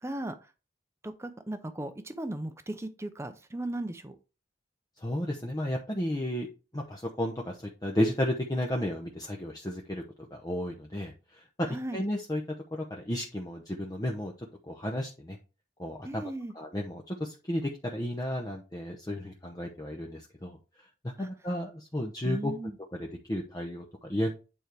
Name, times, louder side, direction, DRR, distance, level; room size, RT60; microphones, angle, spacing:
voice 1, 0.0-0.3 1.0-4.2 11.7-12.0 16.0-16.5 21.2-21.3 22.2-22.8, right 1 dB, 15° right, 10 dB, 0.7 m, -36 dB
voice 2, 5.0-6.5 6.7-10.0 10.3-12.4 12.7-14.3 14.7-15.4 15.8-16.2 16.5-20.6 21.0-22.5 22.9-24.3, left 1 dB, 20° left, 1 dB, 0.9 m, -33 dB
9.1 x 4.6 x 3.4 m, 0.32 s
head